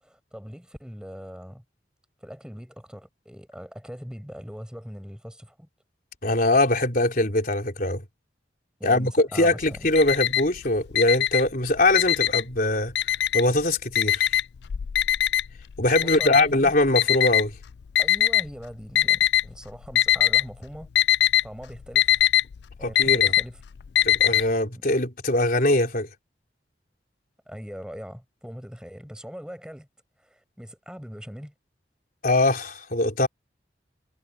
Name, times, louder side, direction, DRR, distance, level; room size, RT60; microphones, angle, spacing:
voice 1, 0.0-1.6 2.2-5.7 8.8-9.9 16.0-16.7 18.0-20.9 21.4-22.2 22.8-23.6 24.7-24.8 27.5-29.9 30.2-31.5, equal, 5° right, 7.8 m, -40 dB
voice 2, 6.2-8.0 8.8-12.9 13.3-14.3 15.8-17.5 22.8-23.3 24.0-26.1 32.2-33.3, left 2 dB, 50° left, 4.1 m, -22 dB
Alarm, 9.6-10.6 10.9-12.6 13.0-13.6 14.0-18.4 19.0-19.6 19.8-20.5 20.7-24.4, left 12 dB, 65° left, 0.4 m, -21 dB
head